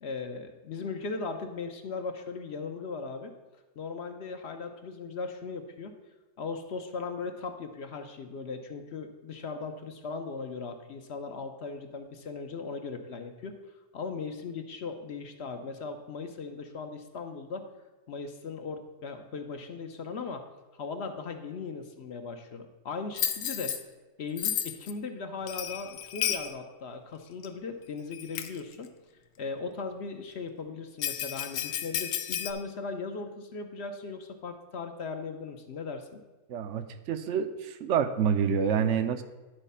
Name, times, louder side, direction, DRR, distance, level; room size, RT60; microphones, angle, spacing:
voice 1, 0.0-3.3 3.8-5.9 6.4-13.5 13.9-17.7 18.1-20.4 20.8-23.8 24.2-28.9 29.4-36.2, left 4 dB, 60° left, 6 dB, 1.0 m, -38 dB
Bell, 23.2-23.8 24.4-24.9 25.5-26.5 27.4-27.5 28.1-28.6 31.0-32.5, left 10 dB, 85° left, 1.0 m, -32 dB
voice 2, 36.5-39.2, right 7 dB, 70° right, 10 dB, 0.9 m, -27 dB
11.0 x 4.1 x 5.5 m, 1.2 s
omnidirectional pair, 1.3 m